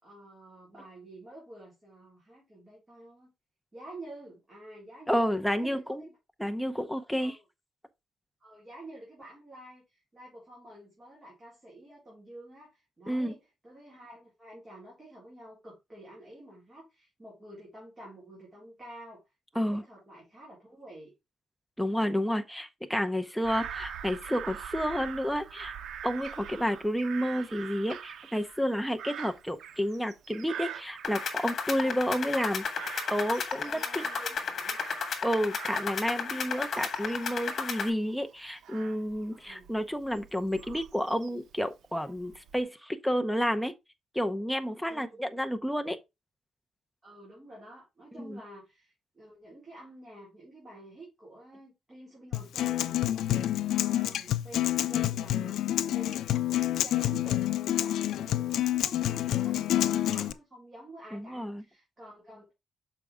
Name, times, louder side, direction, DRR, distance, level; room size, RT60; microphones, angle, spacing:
voice 1, 0.0-3.3 3.7-5.3 5.5-6.2 7.2-7.4 8.4-21.1 33.6-34.8 39.3-39.7 44.8-45.2 47.0-62.5, right 1 dB, 20° right, 3.6 m, -50 dB
voice 2, 5.1-6.1 6.4-7.4 13.1-13.3 19.6-19.8 21.8-25.7 26.0-32.6 33.1-34.0 35.2-43.7 44.1-46.0 48.2-48.4 61.1-61.6, equal, ahead, 0.7 m, -30 dB
Bird vocalization bird call bird song / Crow, 23.4-31.8 32.1-35.2 35.5-41.5 42.0-42.6, right 8 dB, 65° right, 0.7 m, -44 dB
sound 1, 31.0-37.9, left 5 dB, 45° left, 1.5 m, -34 dB
Acoustic guitar, 52.3-60.3, left 13 dB, 80° left, 0.5 m, -28 dB
6.7 x 4.9 x 3.5 m
cardioid pair, 145°, 0 cm